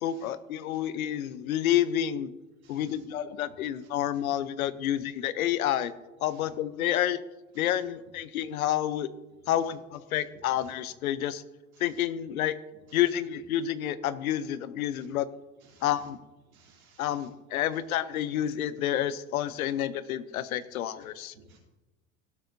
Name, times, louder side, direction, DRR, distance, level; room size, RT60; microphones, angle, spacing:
voice 1, 0.0-2.3 2.7-5.9 6.2-7.2 7.6-9.1 9.5-11.4 11.8-12.5 12.9-15.3 15.8-16.2 17.0-21.3, left 11 dB, 80° left, 16 dB, 0.7 m, -29 dB
voice 2, 2.6-3.0 15.7-15.9 16.5-17.1 21.3-21.6, right 4 dB, 90° right, -2 dB, 3.0 m, -58 dB
17.0 x 7.7 x 2.7 m, 1.1 s
hypercardioid pair, 85°, 42 cm